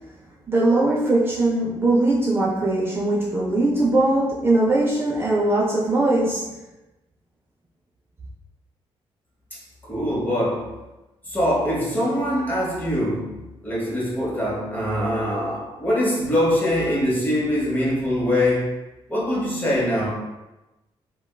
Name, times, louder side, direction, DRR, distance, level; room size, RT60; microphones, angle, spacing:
voice 1, 0.5-6.5, right 2 dB, 25° right, 0.5 m, -20 dB
voice 2, 9.5-10.8 11.2-18.7 19.1-20.1, left 1 dB, 20° left, 1.0 m, -23 dB
3.4 x 2.2 x 2.2 m
cardioid pair, 120°, 10 cm